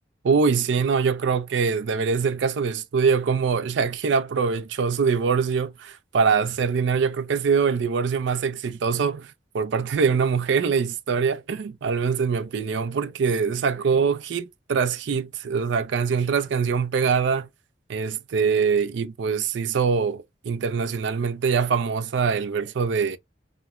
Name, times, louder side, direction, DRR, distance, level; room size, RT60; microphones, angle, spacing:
voice 1, 0.2-17.5 17.9-23.2, right 5 dB, 70° right, 0.4 m, -23 dB
2.9 x 2.0 x 2.3 m
head